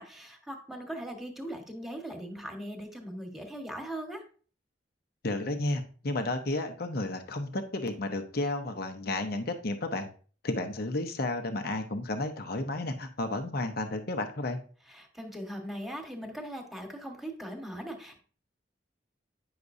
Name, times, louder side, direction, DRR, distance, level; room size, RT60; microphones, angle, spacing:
voice 1, 0.0-4.2 14.9-18.2, right 1 dB, ahead, 2 dB, 1.3 m, -40 dB
voice 2, 5.2-10.1 10.4-14.6, left 2 dB, 55° left, 7 dB, 0.8 m, -32 dB
9.6 x 5.9 x 2.6 m, 0.41 s
head